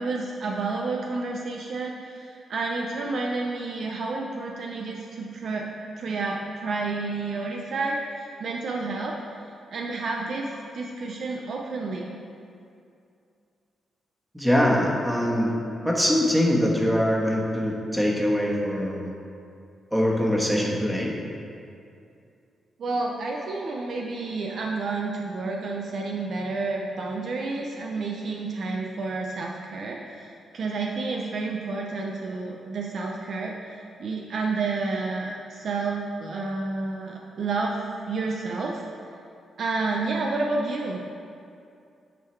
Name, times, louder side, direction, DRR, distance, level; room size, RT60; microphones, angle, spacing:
voice 1, 0.0-5.7 6.0-9.4 9.7-12.2 22.8-33.5 34.0-38.8 39.6-41.0, right 3 dB, 65° right, 0 dB, 0.6 m, -30 dB
voice 2, 14.3-15.5 15.8-19.1 19.9-21.1, equal, 5° right, -2 dB, 1.3 m, -23 dB
9.3 x 3.8 x 4.4 m, 2.5 s
cardioid pair, 75°, 0 cm